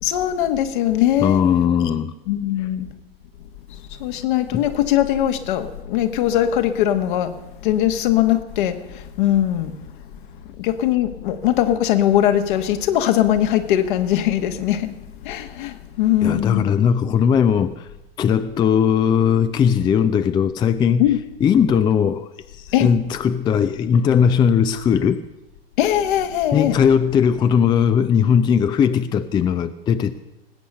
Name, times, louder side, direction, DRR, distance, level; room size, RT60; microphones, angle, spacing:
voice 1, 0.0-1.4 2.3-2.9 4.0-7.3 7.6-9.7 10.6-14.9 15.2-16.7 21.0-21.2 22.7-22.9 25.8-26.8, left 12 dB, 55° left, 1.4 m, -20 dB
voice 2, 1.2-2.1 4.5-4.7 16.2-17.9 18.2-21.1 21.4-25.2 26.5-30.2, left 7 dB, 15° left, 0.4 m, -18 dB
19.0 x 8.4 x 6.6 m
figure-of-eight pair, 90°, 30 cm